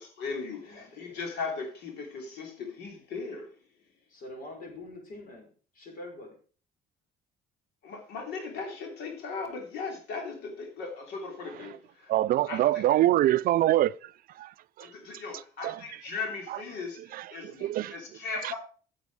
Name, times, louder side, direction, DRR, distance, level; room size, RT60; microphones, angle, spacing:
voice 1, 0.0-3.6 7.8-12.1 12.5-12.8 14.8-18.6, left 4 dB, 80° left, 3.1 m, -38 dB
voice 2, 0.7-1.2 4.1-6.4, left 1 dB, 60° left, 5.2 m, -45 dB
voice 3, 12.1-13.9 14.4-14.5 14.8-14.9 15.6-15.8 17.1-17.2 17.6-17.9, right 14 dB, 60° right, 0.4 m, -24 dB
9.4 x 7.9 x 4.8 m
cardioid pair, 110°, 17 cm